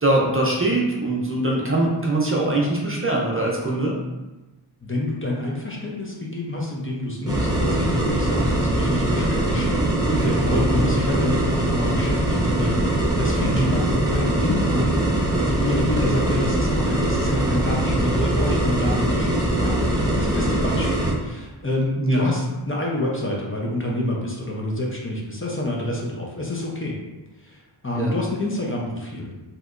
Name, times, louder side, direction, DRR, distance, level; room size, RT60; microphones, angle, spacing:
voice 1, 0.0-3.9 10.0-10.8 13.5-13.8 22.0-22.2 27.9-28.1, right 2 dB, 30° right, -3 dB, 0.6 m, -22 dB
voice 2, 4.8-9.9 10.1-27.0 27.4-29.4, left 1 dB, 25° left, -3 dB, 0.6 m, -28 dB
sound 1, 7.3-21.1, right 1 dB, 10° right, 0.9 m, -22 dB
3.2 x 2.9 x 2.5 m, 1.1 s
wide cardioid pair, 60°, 46 cm